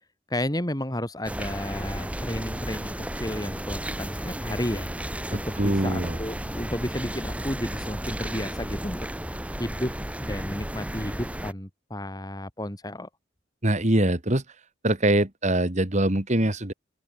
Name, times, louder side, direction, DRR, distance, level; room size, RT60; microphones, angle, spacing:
voice 1, 0.3-4.9 5.3-9.1 9.6-9.9 10.2-13.1, left 1 dB, 20° left, 4.2 m, -32 dB
sound 1, 1.2-11.5, equal, 5° right, 4.3 m, -33 dB
voice 2, 5.3-6.2 13.6-14.4 14.8-16.7, right 1 dB, 40° right, 2.4 m, -23 dB
open air
head